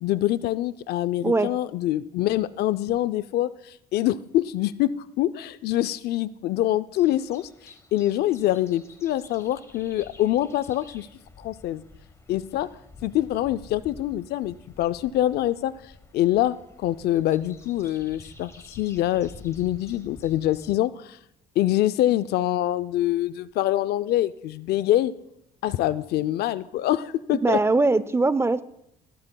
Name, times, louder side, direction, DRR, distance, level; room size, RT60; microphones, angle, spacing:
voice 1, 0.0-11.1 11.4-11.8 12.3-12.7 13.0-15.7 16.1-21.2 21.6-25.1 25.6-27.6, left 13 dB, 70° left, 15 dB, 0.5 m, -25 dB
voice 2, 1.2-1.5 27.3-28.6, right 3 dB, 15° right, 16 dB, 0.4 m, -21 dB
sound 1, 6.9-20.7, left 3 dB, 15° left, 1.1 m, -50 dB
15.5 x 13.5 x 2.3 m, 0.79 s
cardioid pair, 110°, 17 cm